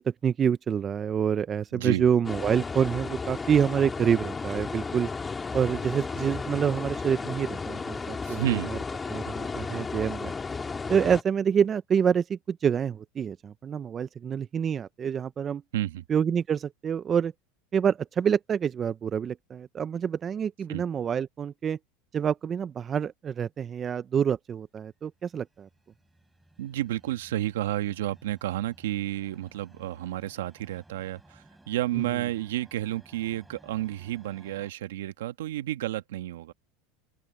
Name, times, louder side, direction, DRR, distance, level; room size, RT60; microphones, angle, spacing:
voice 1, 0.0-5.1 5.5-8.8 9.1-10.3 10.9-15.6 16.1-17.3 17.7-21.8 22.1-25.7 31.9-32.0, right 7 dB, 30° right, 0.5 m, -27 dB
voice 2, 1.7-2.1 8.2-8.7 15.7-16.0 20.7-20.8 26.6-36.5, right 14 dB, 90° right, 1.4 m, -31 dB
sound 1, 2.2-11.2, left 4 dB, 15° left, 2.8 m, -34 dB
sound 2, 25.1-34.7, right 2 dB, 5° right, 7.5 m, -57 dB
open air
supercardioid pair, 120°, 0 cm